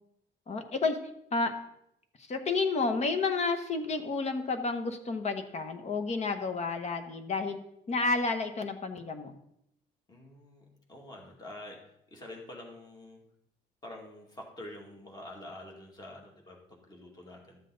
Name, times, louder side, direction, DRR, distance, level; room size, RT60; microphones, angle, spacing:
voice 1, 0.5-1.0 1.3-1.5 2.3-7.6 7.9-9.4, left 3 dB, 40° left, 7 dB, 1.0 m, -30 dB
voice 2, 10.1-11.8 12.1-13.2 13.8-17.6, left 1 dB, 20° left, 0 dB, 2.2 m, -47 dB
12.5 x 7.5 x 3.9 m, 0.76 s
cardioid pair, 150°, 18 cm